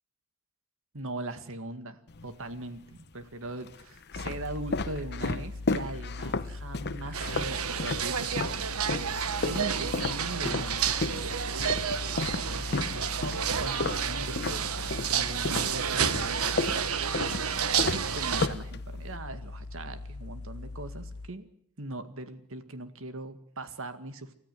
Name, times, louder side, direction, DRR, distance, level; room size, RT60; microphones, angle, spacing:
voice 1, 0.9-8.6 9.4-11.6 12.4-13.3 13.6-16.4 17.2-21.5 21.8-24.3, right 2 dB, 70° right, 10 dB, 2.0 m, -40 dB
sound 1, 2.1-2.8 3.5-8.6 8.9-15.2 15.5-19.2, left 3 dB, 50° left, 0.9 m, -33 dB
sound 2, 4.1-21.3, left 2 dB, 85° left, 1.0 m, -41 dB
sound 3, 7.1-18.5, right 7 dB, 90° right, 1.3 m, -30 dB
29.5 x 13.5 x 9.2 m, 0.73 s
head